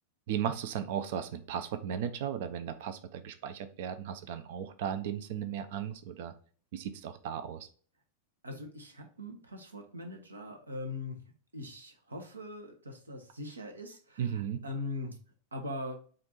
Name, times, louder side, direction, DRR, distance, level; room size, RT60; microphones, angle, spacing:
voice 1, 0.3-6.3 6.7-7.7 14.2-14.6, right 9 dB, 50° right, 10 dB, 0.4 m, -36 dB
voice 2, 8.4-11.2 11.5-15.2 15.5-16.0, left 2 dB, 75° right, 4 dB, 0.8 m, -41 dB
4.3 x 2.5 x 4.1 m, 0.42 s
figure-of-eight pair, 90°, 0 cm